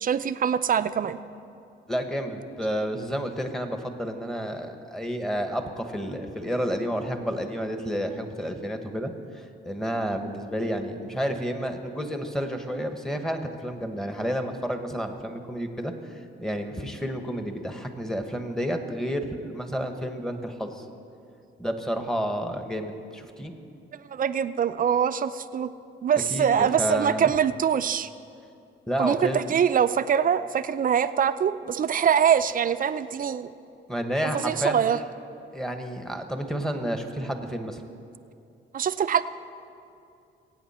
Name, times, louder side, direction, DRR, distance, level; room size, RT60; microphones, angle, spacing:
voice 1, 0.0-1.2 24.1-25.7 26.0-28.1 29.0-33.5 34.4-35.0 38.7-39.2, right 8 dB, 45° right, 12 dB, 0.5 m, -23 dB
voice 2, 1.9-20.8 21.6-23.5 26.3-27.3 28.9-29.5 33.9-34.9 35.5-37.8, equal, ahead, 5 dB, 1.3 m, -30 dB
22.5 x 9.1 x 4.3 m, 2.6 s
cardioid pair, 90°, 20 cm